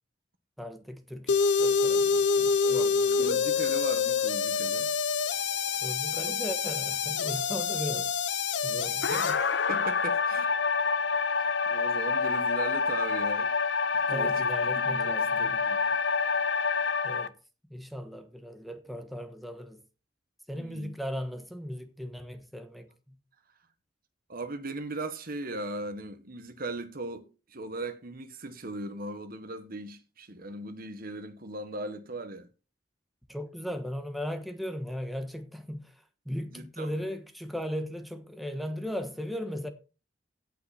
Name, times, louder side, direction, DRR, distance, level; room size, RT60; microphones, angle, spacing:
voice 1, 0.6-1.3 1.6-3.4 5.8-8.1 8.6-9.4 14.1-15.6 17.0-17.3 17.7-19.8 20.5-22.9 33.3-35.9 36.2-39.7, equal, ahead, 1.2 m, -37 dB
sound 1, 1.3-17.3, left 5 dB, 70° left, 0.7 m, -27 dB
voice 2, 2.6-4.9 9.1-10.5 11.4-13.5 13.9-16.0 20.5-20.9 24.3-32.5 36.5-37.0, right 2 dB, 55° right, 1.5 m, -39 dB
17.0 x 5.8 x 4.3 m
head